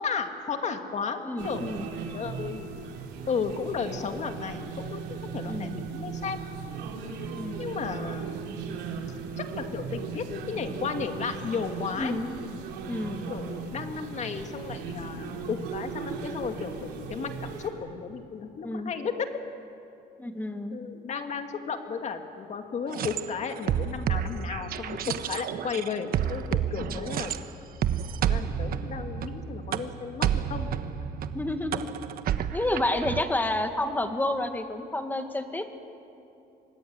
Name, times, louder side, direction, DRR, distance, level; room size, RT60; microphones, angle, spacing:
voice 1, 0.0-1.7 2.1-2.9 3.3-6.4 7.6-8.8 9.4-12.1 13.3-19.3 20.7-27.4 28.2-30.7, left 5 dB, 45° left, 6 dB, 2.3 m, -34 dB
voice 2, 1.2-1.9 5.5-5.8 7.3-7.6 12.0-12.3 12.9-13.2 18.6-18.9 20.2-20.8 31.3-31.9 32.5-35.8, left 1 dB, 10° left, 6 dB, 2.0 m, -30 dB
sound 1, 1.4-17.7, right 5 dB, 85° right, 3.4 m, -37 dB
sound 2, 22.9-27.4 27.8-33.2, right 9 dB, 60° right, 1.2 m, -30 dB
25.5 x 20.5 x 9.7 m, 2.7 s
cardioid pair, 110°, 17 cm